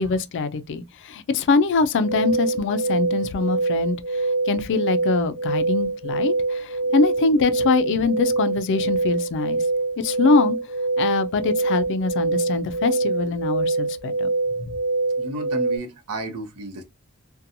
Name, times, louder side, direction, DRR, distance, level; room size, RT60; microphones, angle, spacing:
voice 1, 0.0-9.6 10.0-10.6 11.0-14.3 14.6-14.7, left 4 dB, 55° left, 0.4 m, -23 dB
sound 1, 2.0-15.8, right 3 dB, 50° right, 0.7 m, -24 dB
voice 2, 15.2-16.8, right 2 dB, 85° right, 0.7 m, -33 dB
2.7 x 2.2 x 2.6 m
head